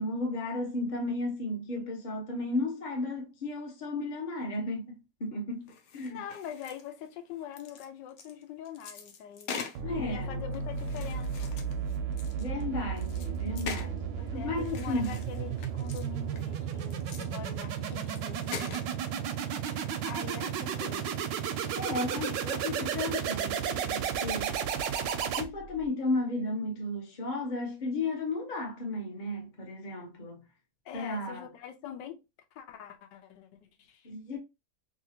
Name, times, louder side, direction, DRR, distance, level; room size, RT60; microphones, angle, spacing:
voice 1, 0.0-4.9 5.2-5.7 5.9-6.2 9.8-10.4 12.4-15.2 21.7-24.5 25.2-30.4 30.9-31.5 34.0-34.4, left 2 dB, 35° left, 0.8 m, -34 dB
sound 1, 5.7-7.1 7.4-9.8 10.5-12.6 13.0-13.9 14.6-16.1 16.3-17.3 17.6-17.7 17.9-18.9, left 6 dB, 65° left, 1.0 m, -43 dB
voice 2, 6.1-9.6 9.9-11.5 14.2-18.8 20.0-21.1 30.8-32.2 32.5-34.1, left 9 dB, 85° left, 1.3 m, -44 dB
sound 2, 9.7-25.9, right 7 dB, 85° right, 1.2 m, -33 dB
3.2 x 2.7 x 2.8 m
omnidirectional pair, 1.9 m